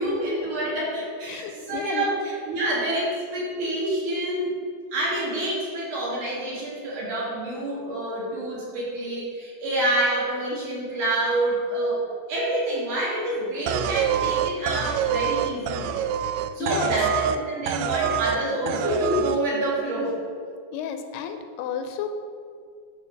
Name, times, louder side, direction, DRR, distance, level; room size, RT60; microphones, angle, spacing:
voice 1, 0.0-4.5 4.9-12.0 12.3-15.9 16.5-20.2, right 1 dB, 50° right, -6 dB, 3.9 m, -27 dB
voice 2, 1.3-2.1 16.6-16.9 20.7-22.1, left 7 dB, 80° left, 7 dB, 2.6 m, -31 dB
sound 1, 13.7-17.4 17.7-18.4 18.7-19.4, right 9 dB, 80° right, 2.4 m, -26 dB
11.5 x 5.0 x 6.6 m, 2.1 s
omnidirectional pair, 4.7 m